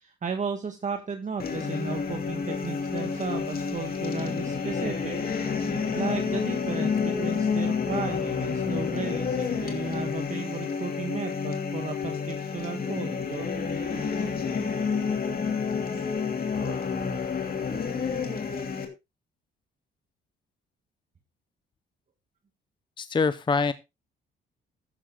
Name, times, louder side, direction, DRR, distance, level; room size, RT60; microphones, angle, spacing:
voice 1, 0.0-5.2 5.9-13.5, right 5 dB, 40° right, 5 dB, 1.5 m, -34 dB
sound 1, 1.4-18.8, left 5 dB, 50° left, 2.8 m, -29 dB
voice 2, 23.0-23.7, left 4 dB, 25° left, 14 dB, 0.6 m, -24 dB
14.5 x 12.5 x 2.3 m, 0.24 s
cardioid pair, 90°, 20 cm